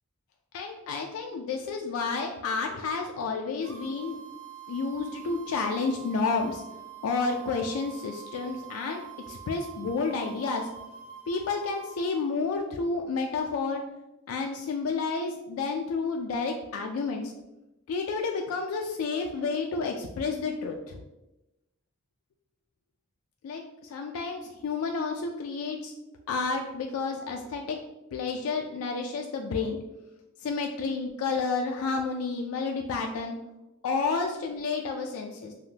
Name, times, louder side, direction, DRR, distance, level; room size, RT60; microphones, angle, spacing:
voice 1, 0.5-4.2 4.7-6.6 7.0-10.7 11.3-13.8 14.3-17.3 17.9-21.0 23.4-25.9 26.3-27.8 28.1-29.8 30.4-33.4 33.8-35.5, left 4 dB, 90° left, 3 dB, 0.3 m, -30 dB
sound 1, 3.6-12.3, right 9 dB, 85° right, 0.5 m, -46 dB
3.3 x 2.1 x 2.7 m, 0.96 s
head